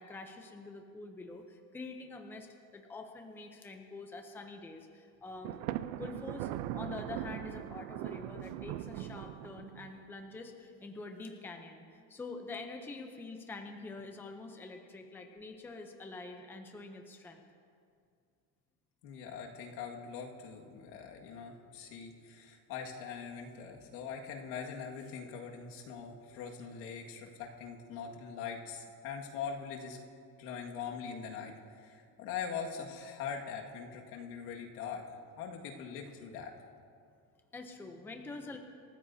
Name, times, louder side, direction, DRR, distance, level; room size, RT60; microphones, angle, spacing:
voice 1, 0.0-5.6 5.9-17.4 37.5-38.6, left 3 dB, 5° left, 4 dB, 0.6 m, -46 dB
Thunder, 5.4-10.0, right 13 dB, 75° right, 0.7 m, -40 dB
voice 2, 19.0-30.0 30.4-31.5 31.8-35.0 35.4-36.5, left 6 dB, 80° left, 1 dB, 2.0 m, -42 dB
27.5 x 14.5 x 2.8 m, 2.3 s
cardioid pair, 175°, 38 cm